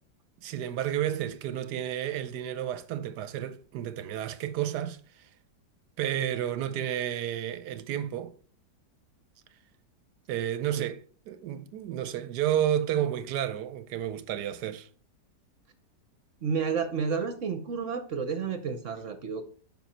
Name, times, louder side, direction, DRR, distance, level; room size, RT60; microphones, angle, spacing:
voice 1, 0.4-5.3 6.0-8.4 10.3-14.9, right 11 dB, 75° right, 1.1 m, -31 dB
voice 2, 16.4-19.4, right 6 dB, 55° right, 1.0 m, -31 dB
7.5 x 5.7 x 4.3 m
omnidirectional pair, 1.9 m